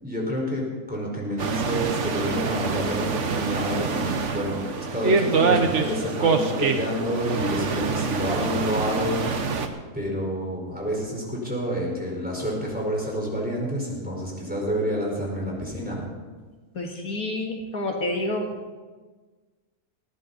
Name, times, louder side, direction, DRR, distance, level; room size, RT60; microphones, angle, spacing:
voice 1, 0.0-9.2 9.9-16.0, equal, 5° right, -3 dB, 4.6 m, -28 dB
sound 1, 1.4-9.7, right 4 dB, 55° right, 1.4 m, -25 dB
voice 2, 16.8-18.5, left 1 dB, 75° left, 1 dB, 2.3 m, -28 dB
19.5 x 15.5 x 4.1 m, 1.4 s
omnidirectional pair, 1.6 m